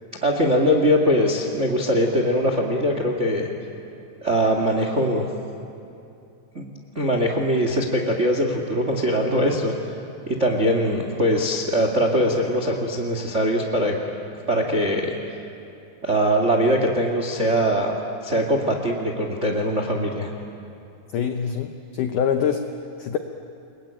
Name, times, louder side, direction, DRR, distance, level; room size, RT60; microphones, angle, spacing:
voice 1, 0.2-3.5 4.2-5.3 6.5-6.6 6.9-9.7 10.3-13.9 14.5-15.1 16.0-17.9 18.2-20.3, equal, 65° right, 3 dB, 0.7 m, -21 dB
voice 2, 21.1-22.7 23.0-23.2, left 8 dB, 90° left, 6 dB, 1.8 m, -24 dB
29.0 x 21.5 x 8.9 m, 2.6 s
omnidirectional pair, 5.1 m